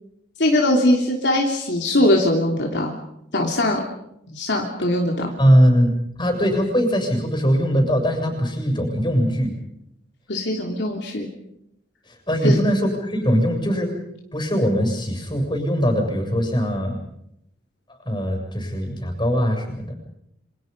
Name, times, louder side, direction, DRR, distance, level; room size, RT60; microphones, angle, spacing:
voice 1, 0.4-2.9 3.3-3.8 4.3-5.3 10.3-11.3 12.4-12.6, left 1 dB, 60° left, 0 dB, 3.1 m, -21 dB
voice 2, 5.4-5.9 6.2-9.5 12.3-13.9 14.3-17.0 18.1-19.9, equal, 25° left, 4 dB, 7.1 m, -20 dB
28.5 x 26.5 x 5.4 m, 0.78 s
head